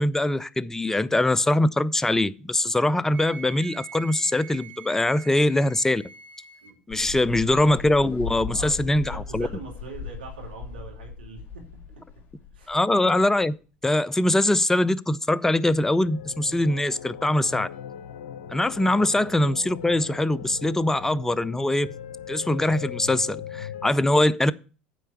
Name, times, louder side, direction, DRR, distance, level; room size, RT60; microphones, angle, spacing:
voice 1, 0.0-6.0 6.9-9.5 12.7-13.6 13.8-17.7 18.5-21.9 22.3-24.5, left 1 dB, 10° left, 0.5 m, -22 dB
Wind instrument woodwind instrument, 3.1-6.8, right 7 dB, 40° right, 1.7 m, -44 dB
voice 2, 6.6-7.3 8.5-11.7 12.0-12.1 12.5-12.8 18.9-19.1, right 4 dB, 80° right, 2.6 m, -43 dB
sound 1, 6.9-13.5, left 5 dB, 40° left, 2.3 m, -37 dB
sound 2, 16.0-23.9, left 8 dB, 75° left, 0.6 m, -39 dB
9.2 x 4.6 x 7.6 m
hypercardioid pair, 70°, 5 cm